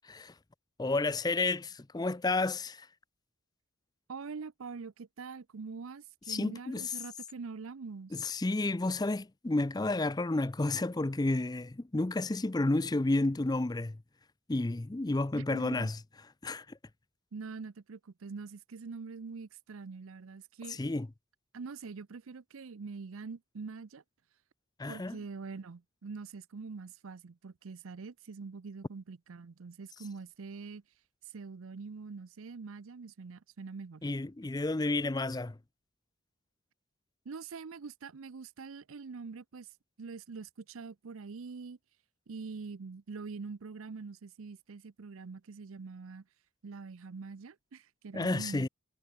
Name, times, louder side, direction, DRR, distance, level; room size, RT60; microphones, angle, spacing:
voice 1, 0.8-2.9 6.3-6.9 8.1-14.0 14.5-16.0 16.4-16.8 20.7-21.1 24.8-25.2 34.0-35.6 48.1-48.7, left 2 dB, 20° left, 0.4 m, -31 dB
voice 2, 4.1-8.3 15.3-15.9 17.3-20.8 21.5-24.0 24.9-30.8 31.3-34.0 37.3-39.7 40.0-41.8 42.3-46.2 46.6-48.7, right 4 dB, 75° right, 0.6 m, -44 dB
head